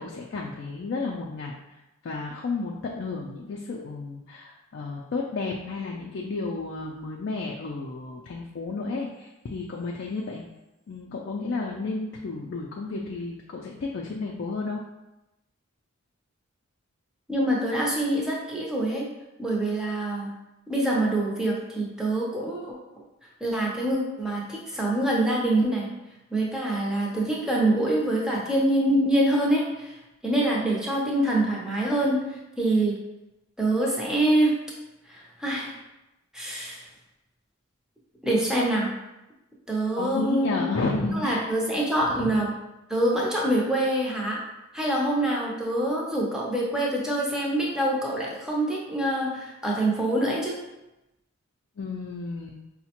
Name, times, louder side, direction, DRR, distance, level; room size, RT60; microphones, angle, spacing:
voice 1, 0.0-1.5 2.0-10.4 10.9-14.8 40.0-41.5 42.1-42.3 51.8-52.6, left 3 dB, 55° left, -1 dB, 0.3 m, -32 dB
voice 2, 17.3-19.1 19.4-20.3 20.7-22.7 23.4-25.9 26.3-30.0 30.2-33.0 33.6-34.5 35.1-35.7 36.3-36.9 38.2-38.9 39.7-40.6 41.1-42.5 42.9-44.4 44.7-50.6, right 1 dB, 5° right, -3 dB, 0.6 m, -25 dB
4.7 x 2.1 x 2.8 m, 0.96 s
head